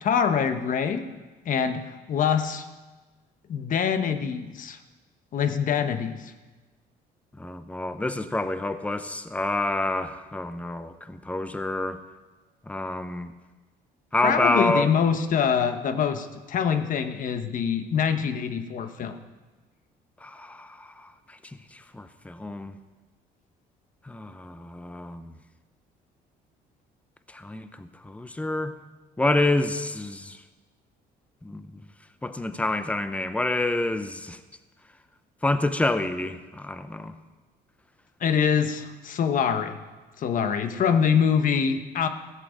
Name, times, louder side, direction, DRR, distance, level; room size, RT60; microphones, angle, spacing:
voice 1, 0.0-1.1 1.4-1.8 2.1-2.6 3.5-4.8 5.3-6.2 14.2-19.2 38.2-39.8 40.2-42.1, left 7 dB, 50° left, 9 dB, 1.1 m, -24 dB
voice 2, 7.4-12.0 12.7-13.3 14.1-14.9 20.2-22.7 24.0-25.3 27.3-28.8 29.2-30.4 31.4-31.8 32.2-34.4 35.4-37.2, left 2 dB, 10° left, 11 dB, 0.7 m, -28 dB
15.5 x 7.6 x 6.4 m, 1.2 s
cardioid pair, 110°, 17 cm